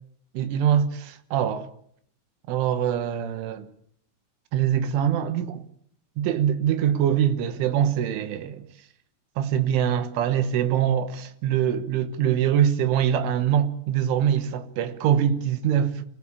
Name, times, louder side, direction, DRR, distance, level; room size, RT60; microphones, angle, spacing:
voice 1, 0.4-1.7 2.5-3.7 4.5-5.6 6.2-8.6 9.4-16.1, right 9 dB, 80° right, 3.7 m, -23 dB
27.0 x 17.0 x 8.4 m
omnidirectional pair, 5.6 m